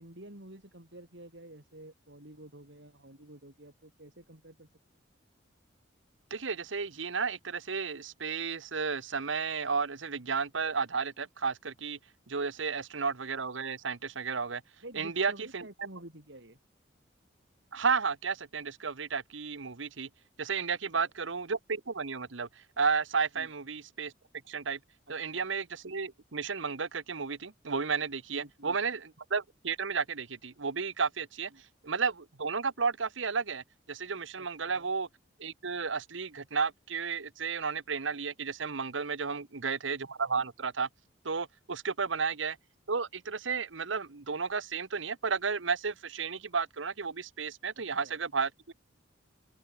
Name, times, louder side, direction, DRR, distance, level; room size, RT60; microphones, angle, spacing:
voice 1, 0.0-4.7 14.8-16.6 21.0-21.1 23.4-23.5 25.3-25.5 28.3-28.8 31.5-31.6 34.4-34.9 39.3-39.5 48.0-48.2, right 1 dB, 65° right, 4.2 m, -50 dB
voice 2, 6.3-12.0 12.3-14.6 14.9-15.7 17.7-20.1 20.4-24.1 24.5-24.8 25.1-31.5 31.8-35.1 35.4-40.9 41.2-42.6 42.9-48.7, right 5 dB, 80° right, 1.2 m, -33 dB
open air
head